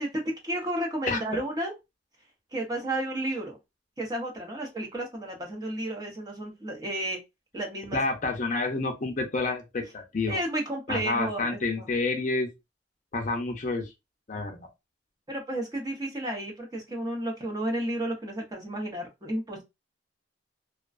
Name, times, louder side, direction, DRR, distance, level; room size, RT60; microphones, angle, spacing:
voice 1, 0.0-1.7 2.5-3.6 4.0-7.2 7.5-8.0 10.3-11.9 15.3-19.6, right 1 dB, 20° right, 0.6 m, -32 dB
voice 2, 7.9-10.4 10.9-12.5 13.1-13.9 14.3-14.6, left 3 dB, 40° left, 0.5 m, -29 dB
2.4 x 2.1 x 2.4 m
head